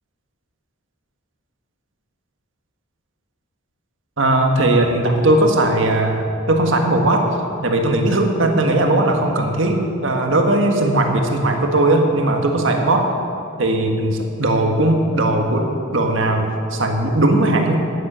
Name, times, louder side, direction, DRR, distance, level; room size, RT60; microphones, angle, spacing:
voice 1, 4.2-7.3 7.6-13.1 13.6-17.8, right 1 dB, 70° right, 3 dB, 1.5 m, -18 dB
10.5 x 10.0 x 6.8 m, 2.6 s
head